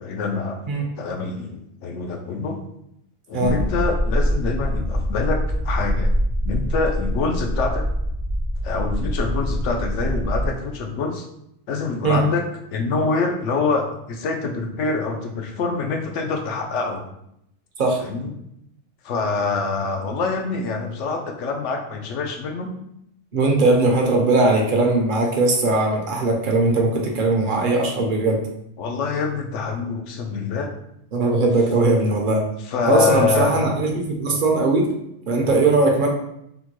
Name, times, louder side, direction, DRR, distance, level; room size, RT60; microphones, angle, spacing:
voice 1, 0.0-0.6 1.0-2.6 3.3-6.1 6.5-7.9 8.6-11.3 11.7-12.5 12.7-17.0 18.0-18.3 19.0-22.7 28.8-30.7 32.7-33.6 35.4-35.7, left 4 dB, 75° left, 3 dB, 0.9 m, -25 dB
sound 1, 3.4-10.5, equal, 20° left, 0.6 m, -24 dB
voice 2, 23.3-28.4 31.1-32.4 32.9-34.9 35.3-36.1, right 2 dB, 50° right, 0 dB, 0.7 m, -19 dB
3.6 x 2.1 x 2.9 m, 0.77 s
omnidirectional pair, 1.2 m